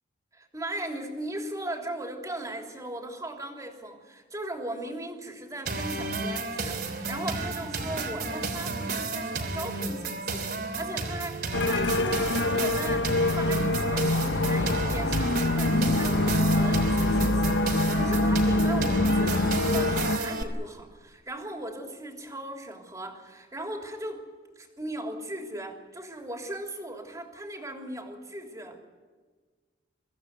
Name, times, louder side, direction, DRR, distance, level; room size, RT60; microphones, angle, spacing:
voice 1, 0.3-24.3 24.5-28.8, right 1 dB, 20° right, 2 dB, 3.4 m, -38 dB
sound 1, 5.7-20.4, right 3 dB, 60° right, 3.2 m, -32 dB
sound 2, 11.5-20.2, left 2 dB, 80° left, 0.9 m, -25 dB
24.0 x 15.5 x 9.6 m, 1.4 s
head